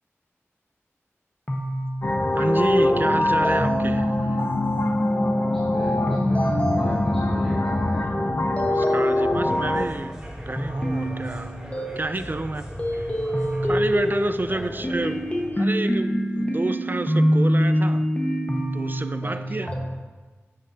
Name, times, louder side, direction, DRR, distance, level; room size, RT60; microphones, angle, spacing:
sound 1, 1.5-5.4 6.1-7.5 8.6-9.7 10.6-12.5 12.8-19.8, equal, 30° left, 1.3 m, -26 dB
sound 2, 2.0-9.9, left 1 dB, 55° left, 0.7 m, -23 dB
voice 1, 2.3-4.4 8.5-10.2 10.5-11.5 12.0-12.6 13.0-13.1 13.6-15.2 15.6-18.1 18.7-19.7, right 2 dB, 40° right, 11 dB, 0.4 m, -30 dB
voice 2, 5.4-8.0 14.5-15.1 19.2-19.6, equal, 10° left, -9 dB, 2.1 m, -37 dB
sound 3, 9.4-15.5, equal, 10° right, 2.7 m, -38 dB
9.6 x 7.7 x 2.8 m, 1.3 s
wide cardioid pair, 50°, 5 cm